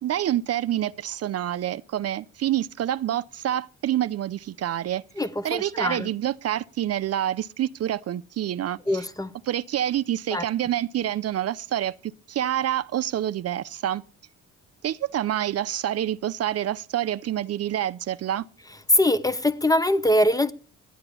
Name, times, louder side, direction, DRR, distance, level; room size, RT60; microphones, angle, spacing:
voice 1, 0.0-5.0 5.4-9.1 9.4-14.0 14.8-18.5, right 12 dB, 55° right, 0.5 m, -27 dB
voice 2, 5.2-6.1 8.9-9.3 10.3-10.4 18.9-20.5, left 1 dB, 10° left, 0.8 m, -22 dB
11.0 x 8.8 x 8.5 m
cardioid pair, 90°, 30 cm